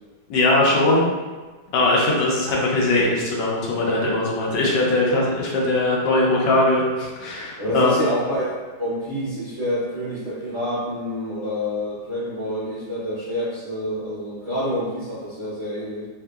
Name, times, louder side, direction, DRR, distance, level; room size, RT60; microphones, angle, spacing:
voice 1, 0.3-1.0 1.7-8.0, left 2 dB, 75° left, -4 dB, 1.3 m, -20 dB
voice 2, 7.6-8.5 8.8-16.1, equal, 45° right, -13 dB, 1.2 m, -27 dB
3.5 x 2.7 x 2.3 m, 1.3 s
omnidirectional pair, 2.0 m